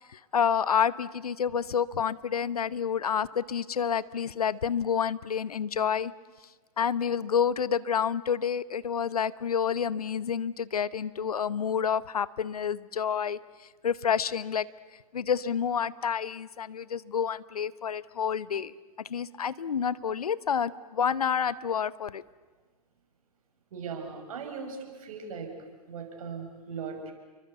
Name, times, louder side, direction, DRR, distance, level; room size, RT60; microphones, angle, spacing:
voice 1, 0.0-6.1 6.8-13.4 13.8-14.7 15.1-18.7 19.1-22.2, left 7 dB, 75° left, 19 dB, 0.9 m, -29 dB
voice 2, 23.7-25.5 25.9-27.1, right 5 dB, 65° right, 4 dB, 6.4 m, -38 dB
29.0 x 23.5 x 8.1 m, 1.3 s
figure-of-eight pair, 105°, 19 cm